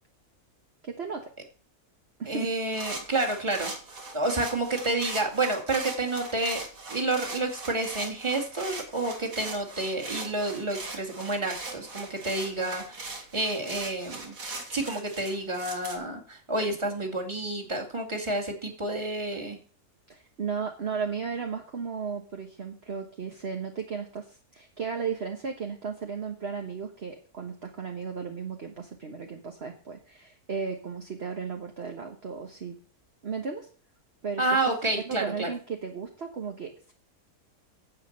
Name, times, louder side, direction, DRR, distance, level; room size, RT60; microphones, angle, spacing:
voice 1, 0.8-1.3 2.2-2.5 20.1-32.8 33.2-33.7 34.2-34.5 34.9-36.9, right 5 dB, 45° right, 3 dB, 1.4 m, -35 dB
voice 2, 2.3-3.7 4.1-6.6 6.9-14.4 14.7-19.6 34.4-35.5, right 2 dB, 20° right, 1 dB, 2.3 m, -29 dB
sound 1, 2.7-16.0, right 3 dB, 65° right, 2.5 m, -40 dB
10.0 x 8.2 x 6.6 m, 0.41 s
omnidirectional pair, 1.6 m